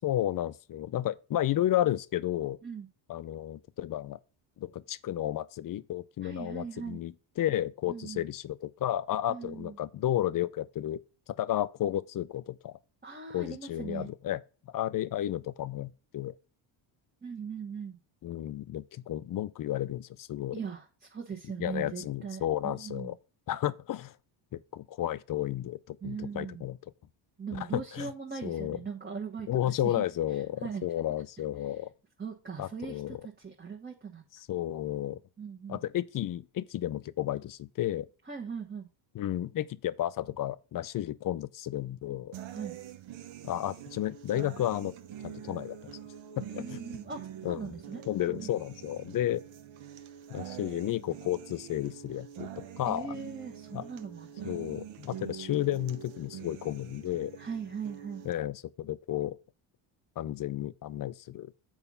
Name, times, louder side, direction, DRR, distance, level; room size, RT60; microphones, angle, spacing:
voice 1, 0.0-2.6 3.1-4.2 4.6-11.0 11.3-12.8 13.3-14.4 14.7-16.3 18.2-20.6 21.6-23.1 23.5-24.1 24.5-26.8 27.5-28.1 28.4-28.8 29.5-31.9 32.6-33.2 34.5-35.2 35.7-38.1 39.1-42.3 43.4-44.9 45.2-45.9 46.4-46.8 47.4-47.7 48.1-49.4 50.3-53.1 53.7-53.8 54.4-57.3 58.3-59.4 60.2-61.5, left 12 dB, 45° left, 0.6 m, -32 dB
voice 2, 6.2-7.0 7.9-8.2 9.3-9.8 13.0-14.1 17.2-18.0 20.5-23.1 26.0-26.7 27.4-30.0 30.3-30.8 31.6-31.7 32.2-34.3 35.4-35.8 38.3-38.9 42.5-42.8 46.5-48.5 52.8-54.5 57.4-58.2, right 6 dB, 20° right, 1.3 m, -40 dB
sound 1, 42.3-58.3, right 10 dB, 70° right, 1.1 m, -45 dB
7.1 x 4.9 x 5.5 m
cardioid pair, 100°, 48 cm